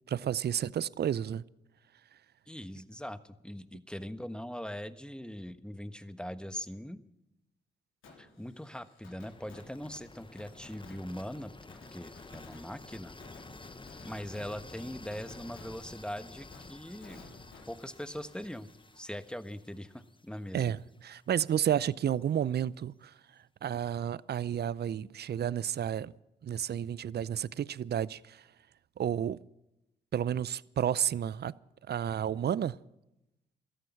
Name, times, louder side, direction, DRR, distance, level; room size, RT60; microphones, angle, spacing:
voice 1, 0.1-1.4 20.5-20.8 21.0-23.1 23.6-26.1 26.4-28.4 29.0-29.4 30.1-31.5 31.9-32.7, right 9 dB, 50° right, 0.6 m, -31 dB
voice 2, 2.5-7.0 8.2-13.1 14.0-17.3 17.7-18.7 18.9-20.7, equal, 5° left, 1.3 m, -41 dB
Fireworks, 8.0-19.7 20.0-20.1 26.7-26.8, left 3 dB, 70° left, 4.0 m, -56 dB
sound 1, 9.2-21.1, left 3 dB, 25° left, 1.2 m, -51 dB
17.0 x 13.5 x 5.7 m
hypercardioid pair, 40°, 21 cm